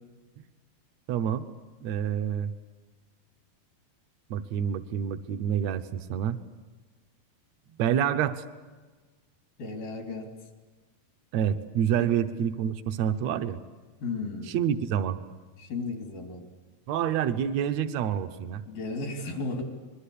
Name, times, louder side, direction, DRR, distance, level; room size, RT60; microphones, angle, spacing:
voice 1, 1.1-1.4 1.8-2.5 4.3-6.4 7.7-8.4 11.3-13.6 14.5-15.2 16.9-18.6, right 9 dB, 70° right, 10 dB, 1.7 m, -27 dB
voice 2, 9.6-10.3 12.0-12.1 14.0-14.5 15.6-16.4 18.7-19.6, left 3 dB, 80° left, 3 dB, 4.9 m, -34 dB
25.0 x 21.5 x 8.5 m, 1.3 s
omnidirectional pair, 4.1 m